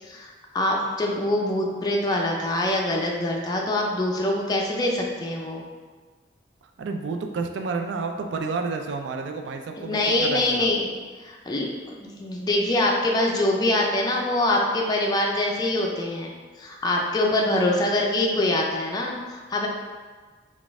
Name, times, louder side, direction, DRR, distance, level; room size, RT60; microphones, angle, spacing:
voice 1, 0.1-5.6 9.8-10.9 11.2-11.7 12.0-16.3 16.6-19.7, left 1 dB, 20° left, -1 dB, 0.4 m, -24 dB
voice 2, 6.8-10.7, right 4 dB, 85° right, 4 dB, 0.4 m, -30 dB
4.0 x 2.4 x 3.5 m, 1.4 s
head